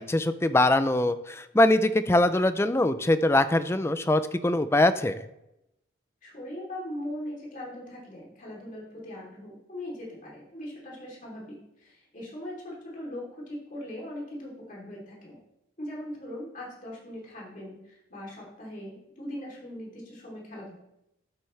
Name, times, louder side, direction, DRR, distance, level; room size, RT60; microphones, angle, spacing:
voice 1, 0.0-5.2, left 1 dB, 15° left, 12 dB, 0.4 m, -23 dB
voice 2, 6.2-15.4 15.8-20.7, left 1 dB, 45° left, -4 dB, 3.2 m, -40 dB
12.0 x 8.1 x 3.3 m, 0.85 s
head